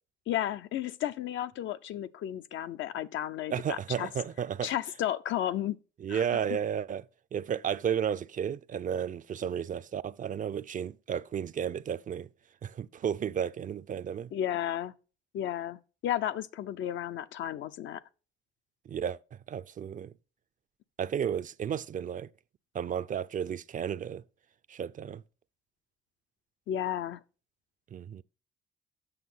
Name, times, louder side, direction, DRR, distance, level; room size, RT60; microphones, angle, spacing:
voice 1, 0.3-4.1 4.6-5.8 6.1-6.2 14.3-14.9 15.3-18.0 26.7-27.2, left 11 dB, 75° left, 0.6 m, -33 dB
voice 2, 3.5-4.7 6.0-7.0 7.3-12.3 12.6-14.3 18.9-20.1 21.0-22.3 22.7-24.2 24.7-25.2 27.9-28.2, right 8 dB, 40° right, 0.4 m, -33 dB
8.0 x 6.2 x 5.5 m
cardioid pair, 90°, 20 cm